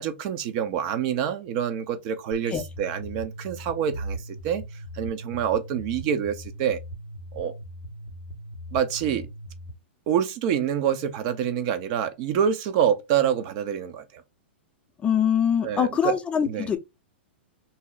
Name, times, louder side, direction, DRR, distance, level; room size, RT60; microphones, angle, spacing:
voice 1, 0.0-4.2 4.4-4.6 4.9-6.8 7.3-7.5 8.7-9.3 10.1-14.2 15.6-16.2 16.4-16.7, right 8 dB, 45° right, 0.6 m, -26 dB
sound 1, 2.3-9.7, right 1 dB, 70° right, 1.3 m, -39 dB
voice 2, 15.0-16.8, left 8 dB, 20° left, 0.4 m, -23 dB
2.7 x 2.0 x 3.8 m
hypercardioid pair, 125°, 6 cm